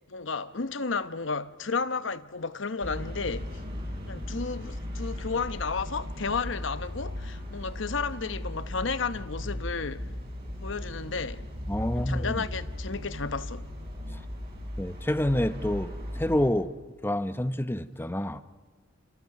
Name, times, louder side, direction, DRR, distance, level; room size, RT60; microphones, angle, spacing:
voice 1, 0.1-3.6 4.0-10.1 10.6-11.5 11.9-13.7, left 4 dB, 70° left, 1.0 m, -32 dB
sound 1, 2.8-16.5, left 1 dB, 55° right, 7.5 m, -37 dB
voice 2, 11.7-12.4 14.8-16.7 17.0-18.4, left 1 dB, 10° left, 1.0 m, -28 dB
29.5 x 28.0 x 6.0 m
head